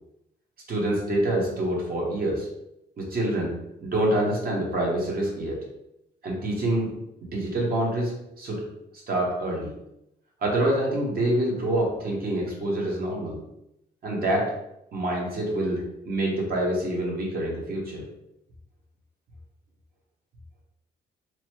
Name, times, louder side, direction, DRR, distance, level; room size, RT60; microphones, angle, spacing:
voice 1, 0.7-2.5 3.0-5.6 6.2-6.9 7.2-8.6 8.9-9.7 10.4-13.4 14.0-14.5 14.9-18.0, right 1 dB, 50° right, -2 dB, 1.0 m, -26 dB
2.9 x 2.1 x 2.9 m, 0.83 s
cardioid pair, 90°, 20 cm